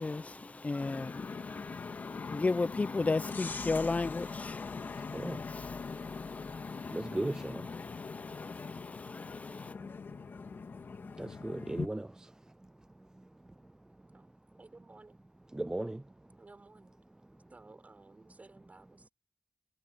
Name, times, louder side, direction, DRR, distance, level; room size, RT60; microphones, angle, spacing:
voice 1, 0.0-7.2 7.7-9.7, left 3 dB, 40° left, 0.7 m, -36 dB
sound 1, 0.8-11.9, left 5 dB, 75° left, 2.4 m, -42 dB
sound 2, 3.1-7.5, left 4 dB, 60° left, 2.5 m, -48 dB
voice 2, 6.9-7.6 11.2-12.3 15.5-16.0, right 1 dB, 20° right, 0.4 m, -36 dB
voice 3, 14.1-15.2 16.4-16.9 17.5-19.1, right 3 dB, 45° right, 5.0 m, -56 dB
cardioid pair, 60°, 4 cm